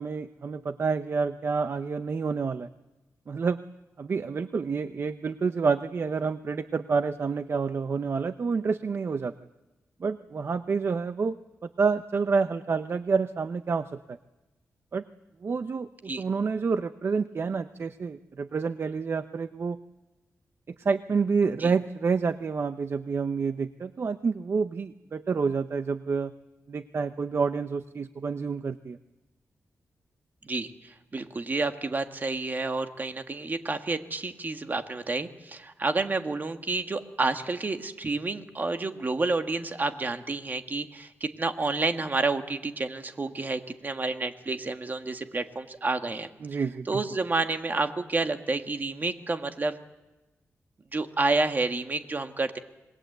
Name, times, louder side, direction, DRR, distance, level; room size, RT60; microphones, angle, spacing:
voice 1, 0.0-2.7 3.3-3.6 4.0-9.3 10.0-14.2 14.9-15.0 15.4-19.8 20.7-26.3 26.7-29.0 46.4-47.0, right 5 dB, 50° right, 11 dB, 0.7 m, -28 dB
voice 2, 30.4-46.6 46.9-49.8 50.9-52.6, right 3 dB, 35° right, 7 dB, 1.7 m, -29 dB
27.0 x 20.5 x 8.0 m, 1.1 s
wide cardioid pair, 95°, 5 cm